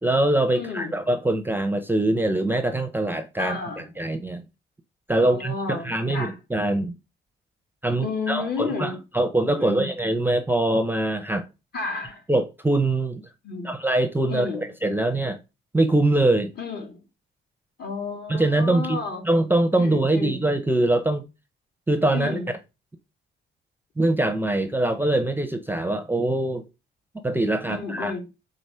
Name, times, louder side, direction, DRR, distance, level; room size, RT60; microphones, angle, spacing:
voice 1, 0.0-4.4 5.1-7.0 7.8-11.4 12.3-13.2 13.6-15.4 15.7-16.5 18.3-19.0 19.2-21.2 21.9-22.4 24.0-26.6 27.2-28.2, right 1 dB, 10° right, 0.7 m, -23 dB
voice 2, 0.5-1.0 3.4-3.9 5.2-6.3 8.0-9.0 9.6-9.9 11.7-12.2 13.4-13.7 14.3-14.7 16.6-17.0 17.8-19.3 19.8-20.4 22.1-22.5 27.7-28.2, left 4 dB, 55° left, 3.0 m, -32 dB
4.8 x 3.8 x 5.5 m
cardioid pair, 90°, 20 cm